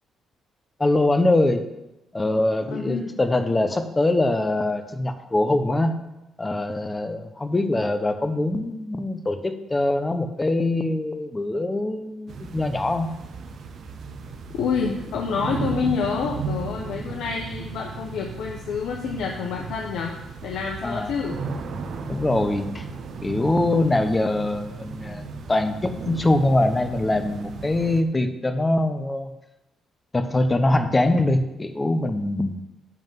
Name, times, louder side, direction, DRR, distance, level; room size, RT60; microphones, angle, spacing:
voice 1, 0.8-1.6 2.1-6.0 6.4-13.1 20.8-21.1 22.1-22.9 23.2-29.3 30.1-32.7, left 2 dB, 20° left, 8 dB, 0.9 m, -23 dB
voice 2, 2.7-3.2 14.6-20.1 20.4-21.4, left 5 dB, 80° left, 0 dB, 1.0 m, -28 dB
sound 1, 12.3-28.0, right 4 dB, 60° right, 0.9 m, -35 dB
11.0 x 3.8 x 7.6 m, 0.94 s
cardioid pair, 90°, 0 cm